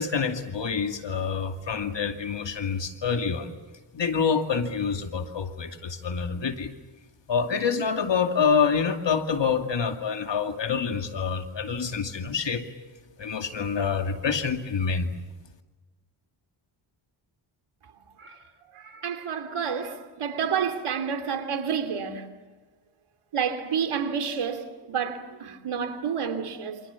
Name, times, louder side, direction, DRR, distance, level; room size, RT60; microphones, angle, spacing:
voice 1, 0.0-3.5 3.9-6.7 7.3-12.7 13.2-15.1, left 6 dB, 60° left, 2.5 m, -27 dB
voice 2, 18.8-22.2 23.3-26.8, right 7 dB, 80° right, 3.1 m, -29 dB
28.5 x 26.5 x 7.2 m
cardioid pair, 85°, 49 cm